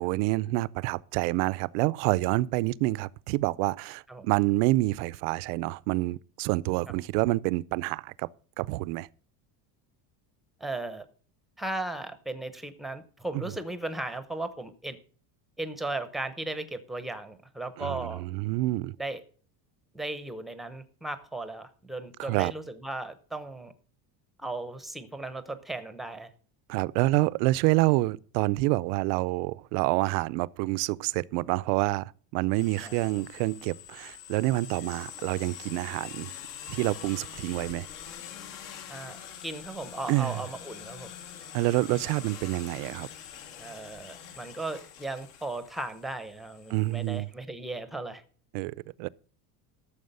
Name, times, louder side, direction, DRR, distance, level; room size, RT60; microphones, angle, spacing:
voice 1, 0.0-8.3 8.6-9.1 17.8-19.0 22.2-22.5 26.7-36.3 36.7-37.9 40.1-40.4 41.5-43.1 46.7-47.3 48.5-49.1, right 20 dB, 85° right, 0.7 m, -27 dB
voice 2, 10.6-11.1 11.6-15.0 15.6-18.2 19.0-19.2 19.9-23.7 24.4-26.3 32.8-32.9 38.9-41.1 43.6-48.2, right 2 dB, ahead, 0.7 m, -36 dB
sound 1, 32.5-47.2, left 9 dB, 70° left, 2.8 m, -45 dB
13.0 x 7.3 x 5.4 m
cardioid pair, 165°, 44 cm